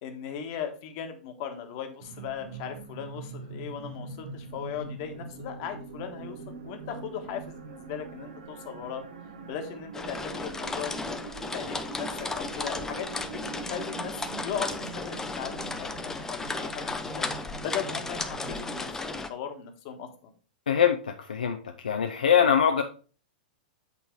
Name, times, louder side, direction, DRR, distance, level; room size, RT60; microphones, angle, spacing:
voice 1, 0.0-9.0 9.4-11.2 11.5-17.3 17.6-20.3, left 8 dB, 45° left, 5 dB, 1.3 m, -38 dB
sound 1, 2.0-18.9, right 5 dB, 60° right, 1.1 m, -43 dB
sound 2, 9.9-19.3, left 3 dB, 10° left, 0.6 m, -35 dB
voice 2, 20.7-22.8, left 8 dB, 70° left, 5 dB, 0.6 m, -23 dB
8.3 x 4.0 x 4.5 m, 0.38 s
figure-of-eight pair, 100°, 5 cm